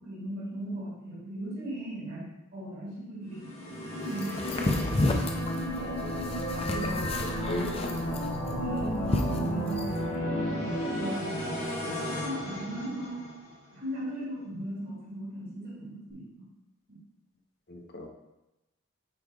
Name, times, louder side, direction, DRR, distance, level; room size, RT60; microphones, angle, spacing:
voice 1, 0.0-5.3 6.7-7.2 7.6-7.7 8.5-13.3 13.7-16.5 16.9-17.0, right 1 dB, 45° right, -7 dB, 2.2 m, -38 dB
sound 1, 3.3-13.5, equal, 70° left, 1.8 m, -33 dB
sound 2, 4.1-10.0, left 2 dB, 25° left, 0.4 m, -32 dB
voice 2, 5.8-6.3 7.0-8.2 17.7-18.1, left 1 dB, 45° left, 2 dB, 0.9 m, -38 dB
8.1 x 5.3 x 2.4 m, 0.95 s
head